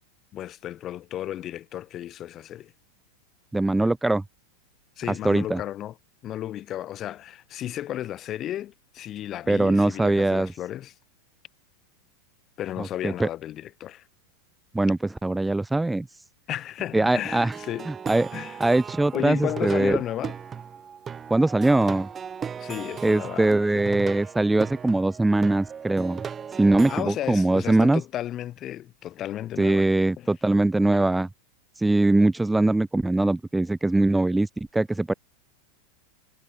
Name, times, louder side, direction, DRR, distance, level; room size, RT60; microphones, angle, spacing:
voice 1, 0.3-2.7 5.0-5.9 6.2-10.9 12.6-14.0 16.5-17.9 18.3-18.6 19.1-20.3 22.6-23.9 26.9-29.9 30.2-30.3, left 12 dB, 40° left, 3.0 m, -33 dB
voice 2, 3.5-4.2 5.2-5.6 9.5-10.5 12.8-13.3 14.7-16.1 16.9-17.5 17.9-18.3 18.6-20.0 21.3-22.1 23.0-26.2 26.6-28.0 29.6-31.3 31.8-35.1, right 2 dB, 5° right, 0.3 m, -22 dB
Plucked string instrument, 17.2-27.0, right 7 dB, 25° right, 4.1 m, -37 dB
hypercardioid pair, 105°, 0 cm